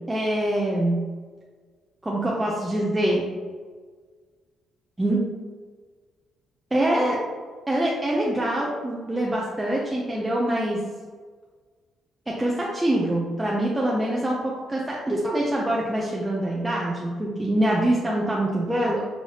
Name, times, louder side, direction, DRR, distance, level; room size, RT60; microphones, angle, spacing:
voice 1, 0.1-1.0 2.0-3.3 5.0-5.2 6.7-7.2 7.7-10.8 12.3-19.0, right 1 dB, 10° right, -4 dB, 0.7 m, -24 dB
5.6 x 2.9 x 2.9 m, 1.5 s
cardioid pair, 90°, 0 cm